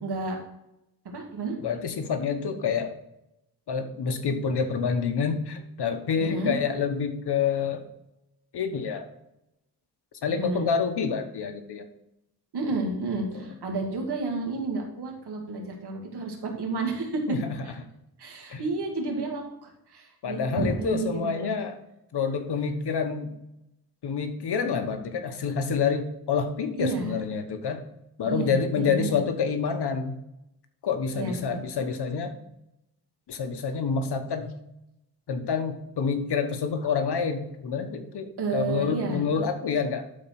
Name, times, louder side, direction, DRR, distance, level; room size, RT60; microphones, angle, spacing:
voice 1, 0.0-0.4 1.0-1.6 6.2-6.5 10.3-10.6 12.5-17.2 18.2-21.5 26.8-27.2 28.2-29.2 31.1-31.6 38.4-39.5, right 3 dB, 85° right, 1 dB, 2.3 m, -31 dB
voice 2, 1.6-2.9 3.7-7.8 8.5-9.1 10.2-11.8 13.3-13.5 17.3-17.5 18.5-18.6 20.2-21.8 22.1-23.3 24.0-27.8 28.2-30.1 30.8-32.3 33.3-34.5 35.3-40.1, left 6 dB, 90° left, 7 dB, 1.3 m, -28 dB
11.5 x 4.4 x 6.0 m, 0.85 s
cardioid pair, 90°, 39 cm